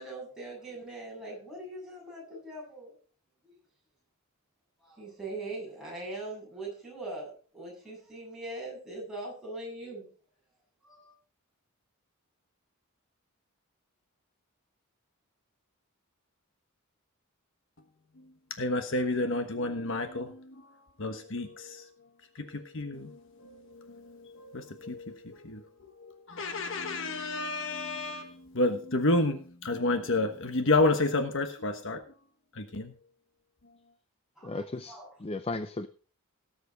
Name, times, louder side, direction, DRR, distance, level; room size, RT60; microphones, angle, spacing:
voice 1, 0.0-3.0 3.4-3.5 4.8-10.1 10.8-11.1 34.4-35.1, right 2 dB, ahead, -5 dB, 7.6 m, -41 dB
voice 2, 18.6-20.6 21.0-21.9 22.3-25.7 26.0-32.0 32.5-32.9, left 2 dB, 60° left, 7 dB, 1.2 m, -30 dB
voice 3, 34.4-35.9, left 2 dB, 25° left, 11 dB, 0.5 m, -36 dB
18.0 x 8.0 x 4.0 m, 0.40 s
head